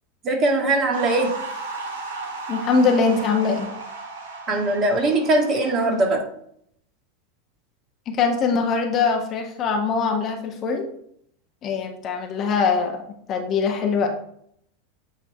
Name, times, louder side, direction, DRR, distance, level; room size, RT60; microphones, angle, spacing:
voice 1, 0.2-1.3 4.5-6.2, right 2 dB, 35° right, 2 dB, 1.9 m, -21 dB
sound 1, 0.9-6.1, right 3 dB, 70° right, 2.6 m, -35 dB
voice 2, 2.5-3.7 8.1-10.9 11.6-13.0 13.3-14.1, left 5 dB, 35° left, 2 dB, 1.4 m, -22 dB
8.7 x 3.4 x 4.4 m, 0.69 s
figure-of-eight pair, 85°, 0 cm